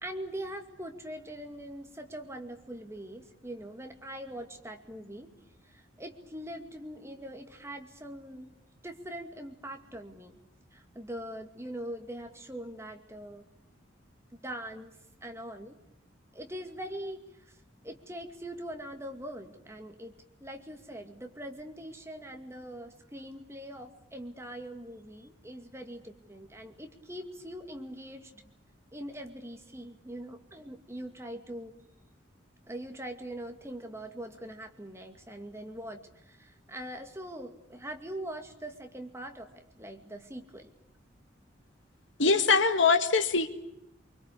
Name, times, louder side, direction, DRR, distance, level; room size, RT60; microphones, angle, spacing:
voice 1, 0.0-5.3 5.6-8.5 8.8-10.4 10.7-13.4 14.4-14.9 15.2-15.8 16.3-17.6 17.8-20.1 20.4-28.4 28.9-31.7 32.7-40.7, right 1 dB, 15° right, 5 dB, 2.3 m, -42 dB
voice 2, 42.2-43.5, left 4 dB, 65° left, 8 dB, 2.0 m, -23 dB
25.5 x 24.0 x 8.4 m, 0.76 s
head